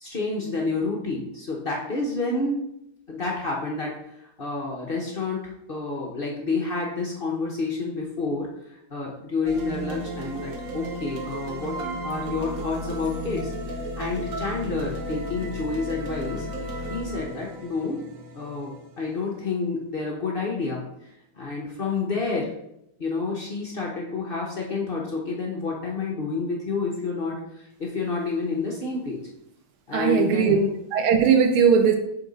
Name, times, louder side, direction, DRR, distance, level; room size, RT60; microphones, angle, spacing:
voice 1, 0.0-2.7 3.1-16.5 16.9-18.0 18.3-22.5 23.0-29.2 29.9-30.7, left 3 dB, 80° left, -2 dB, 0.5 m, -29 dB
sound 1, 9.4-19.6, right 1 dB, 60° right, 0.9 m, -34 dB
voice 2, 29.9-30.6 30.9-31.9, right 7 dB, 80° right, 5 dB, 1.5 m, -19 dB
6.9 x 3.9 x 4.0 m, 0.81 s
omnidirectional pair, 2.4 m